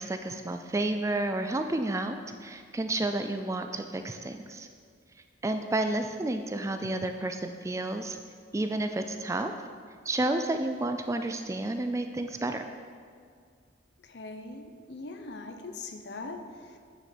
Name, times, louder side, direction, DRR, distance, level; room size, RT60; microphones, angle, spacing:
voice 1, 0.0-4.7 5.4-8.2 8.5-9.5 10.1-12.6, right 2 dB, 15° right, 7 dB, 0.3 m, -31 dB
voice 2, 14.1-14.6 14.9-16.4, left 3 dB, 60° left, 6 dB, 0.7 m, -40 dB
9.1 x 6.4 x 4.4 m, 2.1 s
head